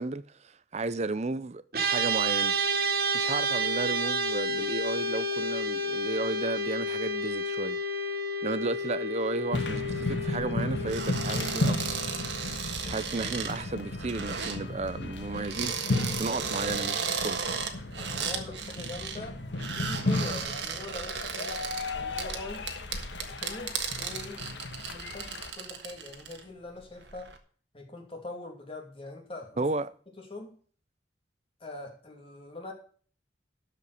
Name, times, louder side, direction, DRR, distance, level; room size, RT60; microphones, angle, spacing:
voice 1, 0.0-2.5 3.1-7.8 8.4-11.8 12.9-17.4 29.6-29.9, right 3 dB, 35° right, 0.6 m, -33 dB
sound 1, 1.7-13.2, right 1 dB, 55° right, 2.1 m, -31 dB
sound 2, 9.5-25.5, left 2 dB, 75° left, 1.3 m, -34 dB
sound 3, 10.9-14.6 15.3-19.2 19.5-26.4 26.8-27.4, right 6 dB, 70° right, 1.5 m, -35 dB
voice 2, 18.0-19.4 19.7-21.6 21.9-22.7 23.2-24.5 24.8-27.3 27.7-29.7 30.2-30.5 31.6-32.7, left 2 dB, 30° left, 2.7 m, -42 dB
12.5 x 5.3 x 6.6 m
head